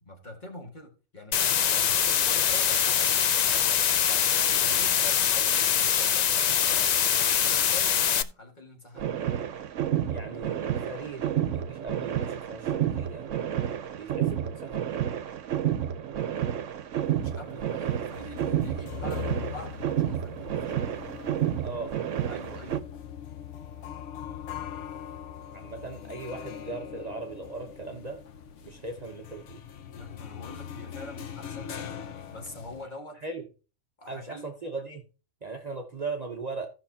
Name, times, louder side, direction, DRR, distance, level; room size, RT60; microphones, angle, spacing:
voice 1, 0.0-3.7 4.0-9.1 17.1-21.1 22.3-22.8 29.9-33.2 34.0-34.4, left 2 dB, 35° left, 2.0 m, -45 dB
sound 1, 1.3-8.2, left 8 dB, 85° left, 0.3 m, -23 dB
sound 2, 9.0-22.8, right 10 dB, 75° right, 1.1 m, -30 dB
voice 2, 10.1-13.3 13.9-14.8 21.6-21.9 24.7-24.9 25.5-28.2 28.6-29.6 33.2-33.4 34.1-35.0 35.4-36.7, right 3 dB, 35° right, 0.9 m, -38 dB
sound 3, 17.0-32.8, left 9 dB, 70° left, 1.1 m, -41 dB
15.5 x 5.9 x 2.8 m
omnidirectional pair, 1.3 m